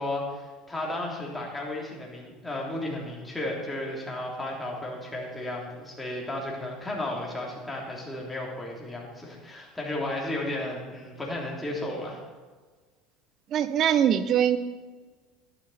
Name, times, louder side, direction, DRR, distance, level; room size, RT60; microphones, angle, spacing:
voice 1, 0.0-12.2, left 1 dB, 10° left, -3 dB, 3.4 m, -34 dB
voice 2, 13.5-14.6, right 9 dB, 50° right, 13 dB, 0.8 m, -22 dB
11.0 x 10.5 x 4.3 m, 1.4 s
supercardioid pair, 100°, 0 cm